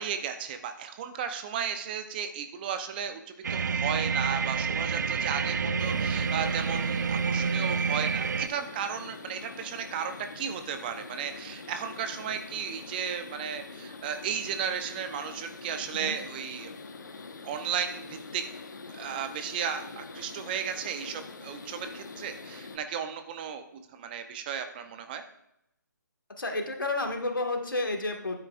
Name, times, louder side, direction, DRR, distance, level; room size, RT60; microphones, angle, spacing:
voice 1, 0.0-3.2 3.5-16.7 17.4-18.4 18.9-25.2, right 8 dB, 30° right, 8 dB, 0.7 m, -34 dB
sound 1, 3.4-8.5, right 5 dB, 60° right, 0.5 m, -28 dB
sound 2, 5.8-22.8, left 4 dB, 65° left, 1.2 m, -44 dB
voice 2, 26.4-28.4, left 2 dB, 85° left, 3 dB, 1.8 m, -31 dB
12.0 x 8.9 x 2.5 m, 0.82 s
figure-of-eight pair, 150°, 11 cm